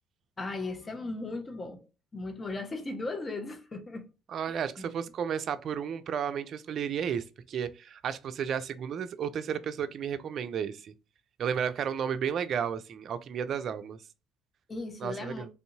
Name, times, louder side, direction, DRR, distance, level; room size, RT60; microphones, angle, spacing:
voice 1, 0.4-1.9 2.1-4.1 4.8-4.9 14.7-15.5, left 2 dB, 30° left, 1.1 m, -37 dB
voice 2, 4.3-10.9 11.4-14.0 15.0-15.5, right 7 dB, 55° right, 0.4 m, -33 dB
3.5 x 2.7 x 2.6 m
hypercardioid pair, 60°, 0 cm